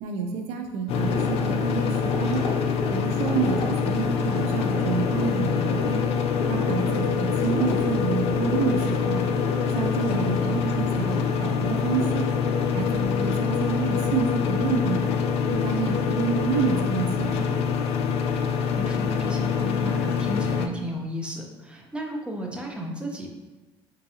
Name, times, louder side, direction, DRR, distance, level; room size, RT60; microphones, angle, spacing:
voice 1, 0.0-2.4 2.9-6.0 6.5-9.2 9.7-12.3 12.7-15.1 15.5-17.6, right 6 dB, 75° right, 3 dB, 0.5 m, -28 dB
sound 1, 0.9-20.7, left 6 dB, 60° left, 0.4 m, -25 dB
sound 2, 1.1-12.7, left 1 dB, 35° left, 1.1 m, -34 dB
voice 2, 10.1-10.7 18.4-23.3, equal, 10° right, 0 dB, 0.7 m, -34 dB
4.5 x 2.6 x 2.7 m, 1.2 s
supercardioid pair, 90°, 11 cm